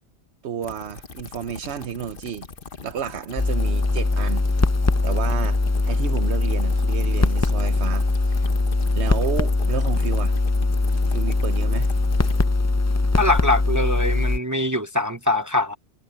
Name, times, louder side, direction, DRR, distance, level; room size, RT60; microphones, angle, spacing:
voice 1, 0.4-2.5 2.8-4.4 5.0-8.5 8.9-10.4 11.1-11.9, right 8 dB, 85° right, 1.1 m, -31 dB
sound 1, 0.6-12.5, left 5 dB, 55° left, 1.4 m, -40 dB
sound 2, 3.4-14.4, left 3 dB, 20° left, 0.5 m, -21 dB
voice 2, 13.2-15.7, left 2 dB, 20° right, 0.6 m, -23 dB
omnidirectional pair, 1.1 m